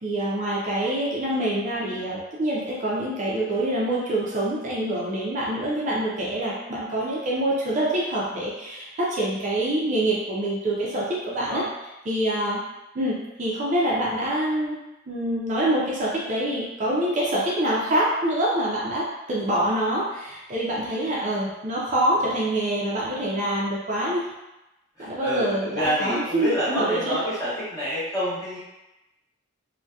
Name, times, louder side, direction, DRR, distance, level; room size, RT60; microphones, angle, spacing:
voice 1, 0.0-11.6 12.1-12.6 12.9-14.8 15.1-24.3 25.0-27.2, right 1 dB, 40° right, -5 dB, 0.4 m, -25 dB
voice 2, 11.3-11.7 21.2-21.3 25.0-28.6, equal, 20° left, -10 dB, 0.9 m, -28 dB
2.6 x 2.1 x 2.2 m, 0.98 s
head